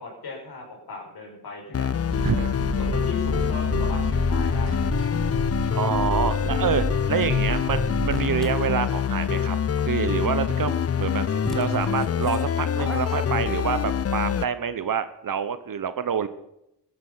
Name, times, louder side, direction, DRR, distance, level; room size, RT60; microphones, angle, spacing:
voice 1, 0.0-1.9 2.7-5.3, left 3 dB, 65° left, 0 dB, 5.8 m, -38 dB
sound 1, 1.7-14.4, left 8 dB, 35° left, 0.6 m, -25 dB
sound 2, 2.1-8.3, right 1 dB, 35° right, 5.3 m, -30 dB
voice 2, 2.2-2.6 5.6-9.6 9.9-16.3, right 7 dB, 55° right, 13 dB, 1.0 m, -27 dB
sound 3, 8.1-8.5 10.8-10.9 11.4-14.0, equal, ahead, 2.0 m, -38 dB
16.5 x 12.0 x 5.6 m, 0.84 s
supercardioid pair, 50°, 40 cm